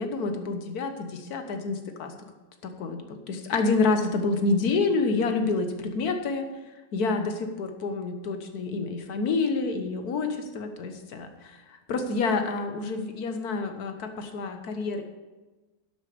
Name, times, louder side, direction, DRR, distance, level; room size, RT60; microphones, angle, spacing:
voice 1, 0.0-2.1 2.6-6.4 6.9-15.0, left 3 dB, 85° left, 7 dB, 1.6 m, -28 dB
11.0 x 8.4 x 5.1 m, 1.2 s
omnidirectional pair, 1.6 m